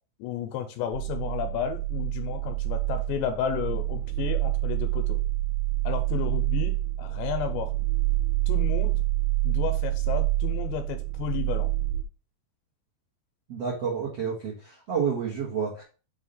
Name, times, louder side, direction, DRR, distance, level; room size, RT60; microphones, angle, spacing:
voice 1, 0.2-5.2 5.8-7.7 8.5-9.0 9.4-11.7, left 9 dB, 85° left, 6 dB, 2.8 m, -32 dB
sound 1, 0.9-12.0, right 18 dB, 90° right, 3.0 m, -27 dB
voice 2, 13.5-15.8, right 6 dB, 65° right, -4 dB, 1.5 m, -29 dB
7.2 x 2.8 x 5.4 m, 0.36 s
omnidirectional pair, 5.3 m